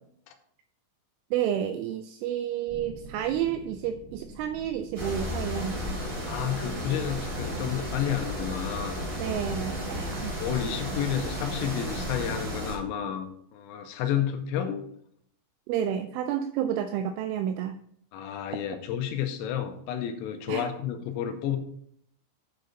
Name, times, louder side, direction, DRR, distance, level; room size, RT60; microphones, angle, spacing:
voice 1, 1.3-6.0 9.1-10.3 15.7-17.8 20.5-20.7, right 10 dB, 85° right, 9 dB, 2.7 m, -30 dB
sound 1, 2.7-9.7, right 1 dB, 50° right, 2.8 m, -48 dB
sound 2, 5.0-12.8, equal, 30° right, 2.8 m, -33 dB
voice 2, 6.3-9.0 10.4-14.8 18.1-21.6, left 9 dB, 85° left, 7 dB, 3.4 m, -31 dB
9.1 x 6.6 x 4.0 m, 0.68 s
omnidirectional pair, 6.0 m